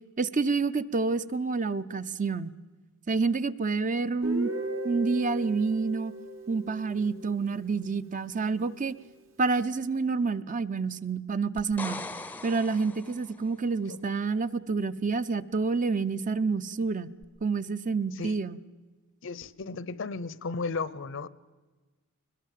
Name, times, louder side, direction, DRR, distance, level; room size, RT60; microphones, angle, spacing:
voice 1, 0.2-2.5 3.1-4.5 4.8-6.1 6.5-8.9 9.4-12.0 12.4-17.1 17.4-18.6, right 4 dB, 40° right, 12 dB, 0.7 m, -28 dB
Guitar, 4.2-8.1, equal, 80° right, 2.6 m, -37 dB
sound 1, 11.6-13.5 17.2-17.3, left 2 dB, 10° left, 0.6 m, -40 dB
voice 2, 19.2-21.3, left 4 dB, 65° left, 19 dB, 0.7 m, -35 dB
21.5 x 21.5 x 7.5 m, 1.3 s
head